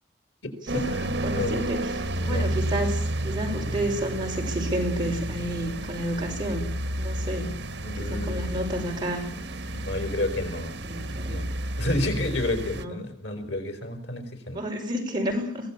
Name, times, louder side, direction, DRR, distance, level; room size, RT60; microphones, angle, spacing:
voice 1, 0.4-1.1 1.4-1.6 2.2-2.5 7.8-8.6 9.7-10.8 11.3-11.5 11.8-14.6, left 1 dB, 90° left, 7 dB, 4.6 m, -30 dB
sound 1, 0.7-12.8, right 1 dB, 75° right, 1.6 m, -31 dB
voice 2, 1.2-6.6 7.0-7.6 8.0-9.3 10.8-11.4 12.8-13.0 14.5-15.7, equal, 25° right, 0 dB, 5.6 m, -30 dB
23.5 x 17.0 x 8.6 m, 0.63 s
head